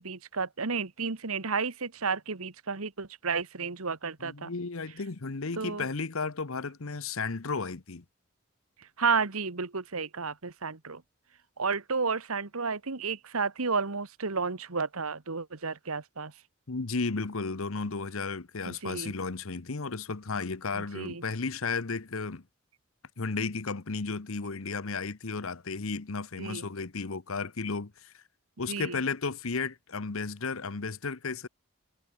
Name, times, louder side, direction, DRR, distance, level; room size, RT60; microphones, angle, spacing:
voice 1, 0.0-4.5 5.6-5.8 9.0-11.0 11.6-16.3 18.7-19.1 20.7-21.2 26.4-26.6 28.7-29.0, right 5 dB, 85° right, 1.5 m, -32 dB
voice 2, 4.2-8.0 16.7-22.4 23.2-28.1 28.6-31.5, left 4 dB, 75° left, 1.0 m, -34 dB
head